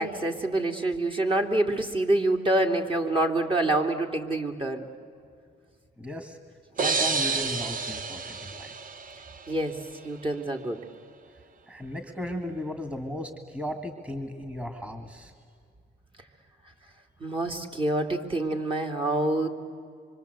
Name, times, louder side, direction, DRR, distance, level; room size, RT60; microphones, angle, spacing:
voice 1, 0.0-4.9 9.5-9.7 10.0-10.8 17.2-19.5, right 2 dB, 25° right, 2 dB, 2.4 m, -26 dB
voice 2, 6.0-6.4 6.8-8.7 11.7-15.3, left 1 dB, 5° right, 7 dB, 2.1 m, -36 dB
sound 1, 6.8-9.6, right 4 dB, 45° right, 1.3 m, -29 dB
26.0 x 24.5 x 8.1 m, 2.2 s
cardioid pair, 90°, 20 cm